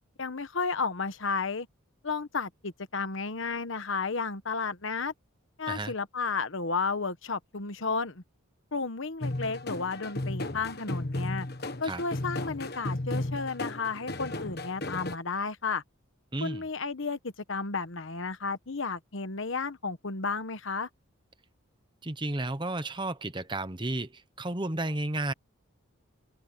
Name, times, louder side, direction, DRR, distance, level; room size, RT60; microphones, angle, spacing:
voice 1, 0.2-1.7 2.0-5.1 5.6-8.2 8.7-11.5 11.8-15.8 16.4-20.9, left 4 dB, 65° left, 1.1 m, -32 dB
sound 1, 9.2-15.2, left 1 dB, 50° left, 1.5 m, -34 dB
voice 2, 16.3-16.6 22.0-25.3, right 2 dB, 20° right, 1.1 m, -32 dB
open air
head